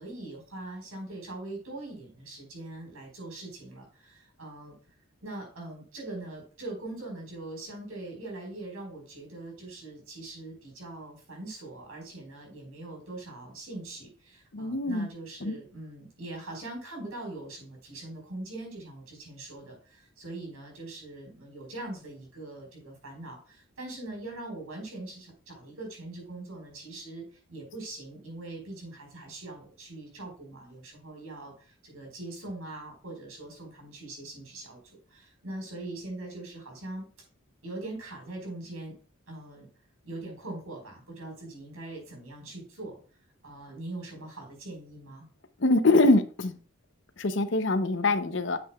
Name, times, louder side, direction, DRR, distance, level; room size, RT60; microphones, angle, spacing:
voice 1, 0.0-4.8 5.2-37.1 37.6-39.0 39.3-39.7 40.0-43.0 43.4-45.2, right 2 dB, 85° right, 1 dB, 4.6 m, -42 dB
voice 2, 14.5-15.1 15.4-15.6 45.6-46.5 47.2-48.6, left 2 dB, 55° left, 11 dB, 0.7 m, -24 dB
9.4 x 7.8 x 2.3 m, 0.38 s
head